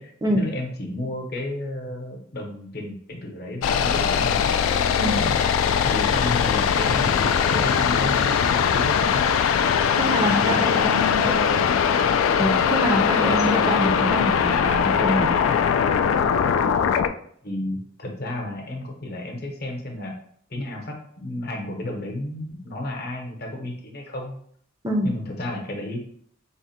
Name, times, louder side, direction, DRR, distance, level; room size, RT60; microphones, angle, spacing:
voice 1, 0.0-4.5 5.2-5.5 5.8-9.3 10.2-11.8 17.4-20.1 20.5-24.4 25.0-26.0, left 1 dB, 50° left, 1 dB, 0.8 m, -32 dB
sound 1, 3.6-17.1, left 7 dB, 80° left, 0.3 m, -21 dB
voice 2, 10.0-11.4 12.4-15.4 24.8-25.1, equal, 20° right, 1 dB, 0.4 m, -25 dB
3.6 x 2.1 x 4.1 m, 0.63 s
head